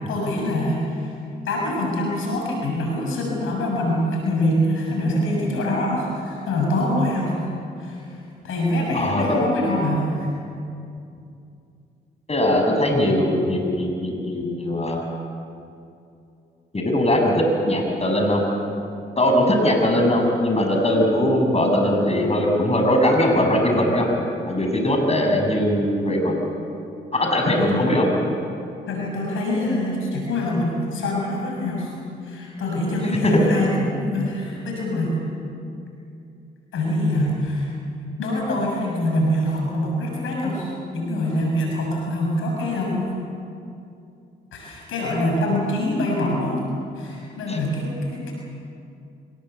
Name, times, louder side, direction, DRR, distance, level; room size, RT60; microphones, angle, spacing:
voice 1, 0.1-1.1 1.4-7.4 7.8-8.2 8.4-10.3 27.4-27.9 28.9-31.9 32.2-35.2 36.7-37.7 38.2-43.1 44.5-46.6 46.9-48.3, left 1 dB, 85° left, -1 dB, 6.8 m, -24 dB
voice 2, 8.9-9.2 12.3-15.0 16.7-18.4 19.2-24.1 24.5-26.3 27.1-28.0 47.5-47.6, left 1 dB, 30° left, 1 dB, 6.8 m, -20 dB
24.5 x 21.0 x 8.2 m, 2.6 s
supercardioid pair, 55°, 21 cm